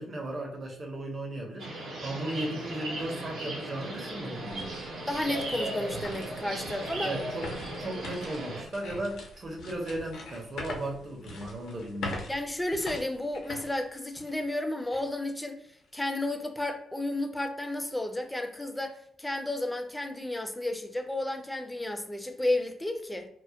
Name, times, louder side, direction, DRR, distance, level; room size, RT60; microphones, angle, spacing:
voice 1, 0.0-4.7 7.0-7.5 7.8-12.3, right 1 dB, 35° right, 0.6 m, -36 dB
sound 1, 1.6-8.6, right 1 dB, 80° right, 0.6 m, -37 dB
sound 2, 3.0-3.1 3.6-14.5 14.9-15.0 15.6-16.0, left 2 dB, 85° left, 0.5 m, -43 dB
voice 2, 5.1-7.1 12.3-15.6 15.9-23.3, left 1 dB, 5° left, 0.3 m, -32 dB
2.2 x 2.0 x 2.7 m
cardioid pair, 120°, 0 cm